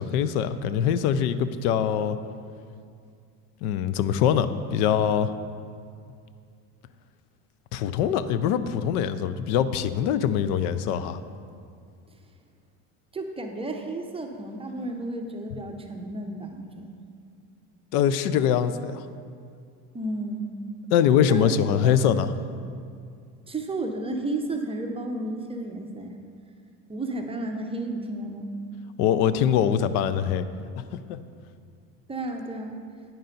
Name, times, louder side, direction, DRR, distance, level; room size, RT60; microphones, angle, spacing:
voice 1, 0.0-2.2 3.6-5.3 7.7-11.2 17.9-19.0 20.9-22.3 29.0-30.4 30.8-31.2, left 9 dB, 90° left, 13 dB, 0.5 m, -23 dB
voice 2, 13.1-17.0 19.9-20.6 21.3-22.0 23.5-26.2 26.9-28.5 32.1-32.8, right 2 dB, 15° right, 3 dB, 0.5 m, -32 dB
9.1 x 5.4 x 3.9 m, 2.3 s
supercardioid pair, 110°, 44 cm